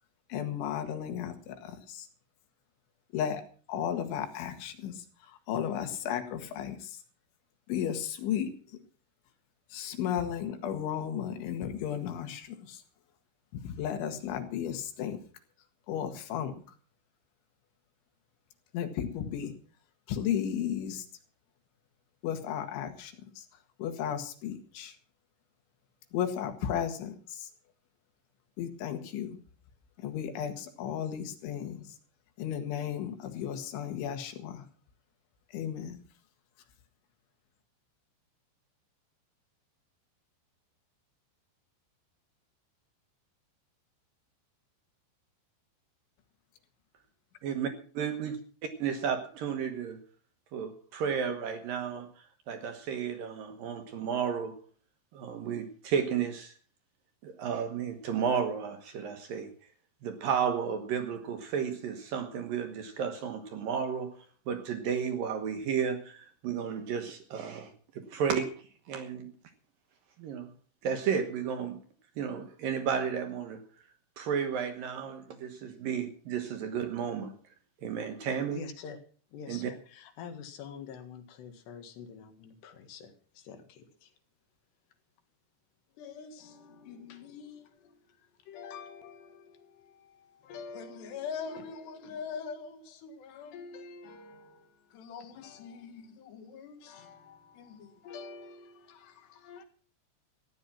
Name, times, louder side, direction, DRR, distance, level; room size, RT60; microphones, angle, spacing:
voice 1, 0.3-2.1 3.1-3.4 3.7-7.0 7.7-8.8 9.7-12.8 13.5-15.2 15.9-16.6 18.7-19.5 20.1-21.1 22.2-23.5 23.8-25.0 26.1-27.5 28.6-29.4 30.0-32.0 32.4-34.7 35.5-36.0, left 9 dB, 90° left, 4.2 m, -34 dB
voice 2, 47.4-48.4 48.8-50.0 50.5-54.5 55.1-56.5 57.2-59.5 60.0-64.2 64.5-69.3 70.2-70.5 70.8-71.8 72.2-73.6 74.2-77.4 77.8-78.6 79.5-79.7, right 7 dB, 65° right, 2.4 m, -33 dB
voice 3, 78.5-79.0 79.3-84.1 86.0-99.7, left 6 dB, 70° left, 3.7 m, -45 dB
15.0 x 11.0 x 6.0 m
omnidirectional pair, 5.2 m